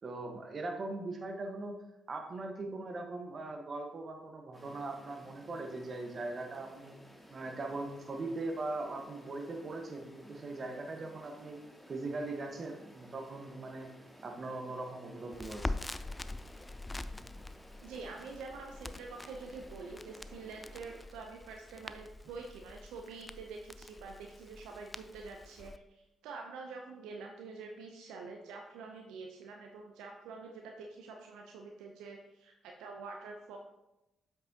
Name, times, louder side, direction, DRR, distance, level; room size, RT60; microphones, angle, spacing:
voice 1, 0.0-1.7 2.1-6.9 7.3-11.6 11.9-13.9 14.2-15.8, right 2 dB, 50° right, 4 dB, 1.2 m, -40 dB
sound 1, 4.5-21.1, equal, 5° left, 2.0 m, -56 dB
Crackle, 15.3-25.8, left 2 dB, 20° left, 0.4 m, -44 dB
voice 2, 17.8-33.6, right 4 dB, 80° right, 1 dB, 0.6 m, -46 dB
8.0 x 5.9 x 2.8 m, 0.93 s
hypercardioid pair, 45°, 0 cm